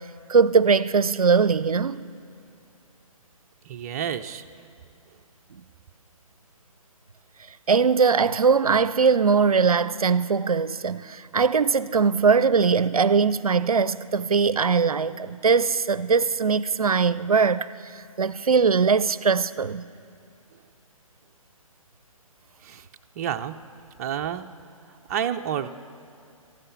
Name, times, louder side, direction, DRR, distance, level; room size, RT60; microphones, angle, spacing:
voice 1, 0.3-2.0 7.7-17.7 18.2-19.9, right 5 dB, 85° right, 0.4 m, -21 dB
voice 2, 3.6-4.4 22.6-22.9 23.2-23.6 24.0-24.5 25.1-25.7, right 9 dB, 30° right, 0.4 m, -29 dB
14.0 x 12.0 x 7.0 m
figure-of-eight pair, 135°, 18 cm